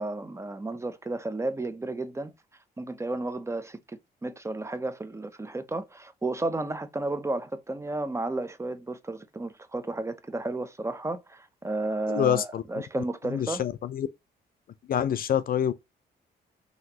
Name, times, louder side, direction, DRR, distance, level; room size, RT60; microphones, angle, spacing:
voice 1, 0.0-2.3 2.8-13.6, right 2 dB, 15° right, 0.6 m, -32 dB
voice 2, 12.1-12.6 12.9-14.1 14.9-15.7, left 10 dB, 55° left, 0.5 m, -27 dB
5.7 x 2.8 x 2.8 m
cardioid pair, 115°, 18 cm